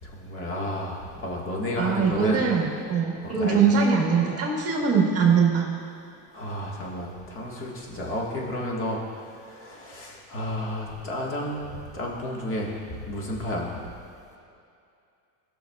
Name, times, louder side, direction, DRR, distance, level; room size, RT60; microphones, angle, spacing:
voice 1, 0.0-2.5 3.2-3.6 6.3-13.9, left 1 dB, 30° left, -3 dB, 1.7 m, -32 dB
voice 2, 1.8-5.7, right 5 dB, 35° right, -1 dB, 1.5 m, -22 dB
16.5 x 6.3 x 2.4 m, 2.5 s
supercardioid pair, 135°, 42 cm